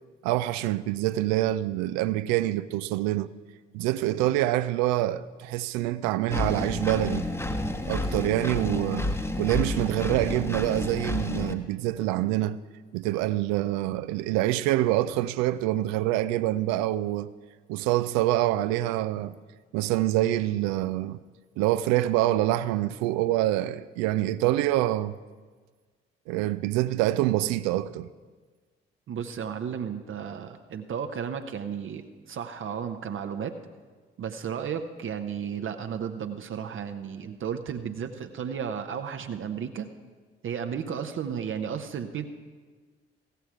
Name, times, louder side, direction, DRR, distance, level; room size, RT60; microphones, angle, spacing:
voice 1, 0.2-3.3 3.7-7.3 7.9-9.1 9.4-12.6 12.9-17.3 17.7-19.4 19.7-21.2 21.6-25.2 26.3-28.1, right 15 dB, 60° right, 0.5 m, -26 dB
Engine, 6.3-11.5, left 1 dB, 10° left, 1.0 m, -30 dB
voice 2, 29.1-32.0 32.3-33.6 34.2-39.9 40.4-42.2, right 7 dB, 45° right, 0.8 m, -33 dB
15.0 x 8.0 x 4.8 m
figure-of-eight pair, 40°, 30 cm